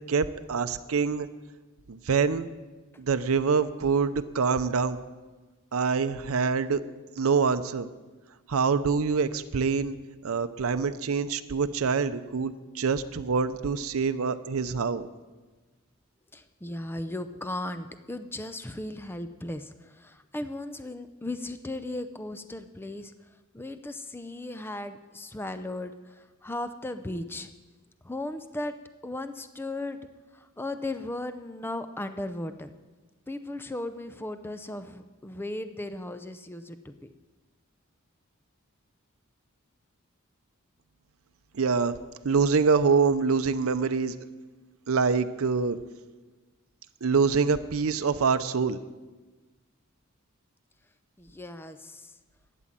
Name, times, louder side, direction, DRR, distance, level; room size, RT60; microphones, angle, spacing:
voice 1, 0.1-1.3 1.9-2.5 3.0-5.0 5.7-6.8 7.2-7.9 8.5-10.0 10.2-15.1 41.5-41.9 42.2-44.1 44.9-45.8 47.0-48.8, right 5 dB, 80° right, 11 dB, 0.6 m, -25 dB
voice 2, 16.3-23.1 23.5-27.5 28.0-28.8 29.0-30.1 30.3-32.7 33.3-37.1 51.2-52.1, left 1 dB, 10° left, 10 dB, 0.5 m, -36 dB
12.5 x 9.1 x 7.4 m, 1.3 s
head